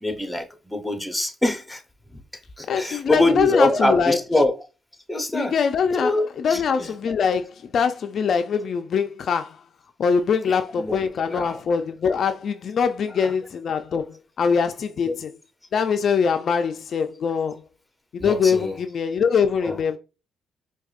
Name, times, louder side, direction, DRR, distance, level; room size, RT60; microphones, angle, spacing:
voice 1, 0.0-1.8 2.1-2.2 2.6-4.6 5.1-5.6 5.9-6.9 10.5-11.6 13.2-13.3 15.1-15.2 18.2-18.8 19.6-19.8, left 1 dB, 5° left, 0.7 m, -24 dB
voice 2, 2.7-4.2 5.3-9.6 10.0-15.3 15.7-17.6 18.1-20.0, left 6 dB, 55° left, 0.3 m, -23 dB
4.8 x 2.2 x 2.3 m
cardioid pair, 90°, 0 cm